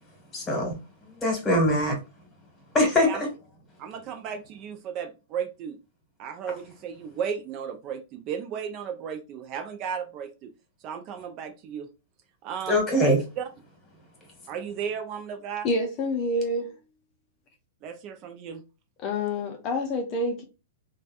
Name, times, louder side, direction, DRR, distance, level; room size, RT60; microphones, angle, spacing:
voice 1, 0.3-0.8 1.1-2.0 2.7-3.3 12.7-13.2, left 1 dB, 20° left, 1.4 m, -22 dB
voice 2, 3.8-5.8 6.2-10.5 10.8-11.9 12.4-13.5 14.5-15.7 17.8-18.6, right 7 dB, 40° right, 0.4 m, -35 dB
voice 3, 15.6-16.8 19.0-20.4, left 1 dB, 35° left, 0.5 m, -27 dB
3.2 x 2.2 x 2.4 m
hypercardioid pair, 120°, 0 cm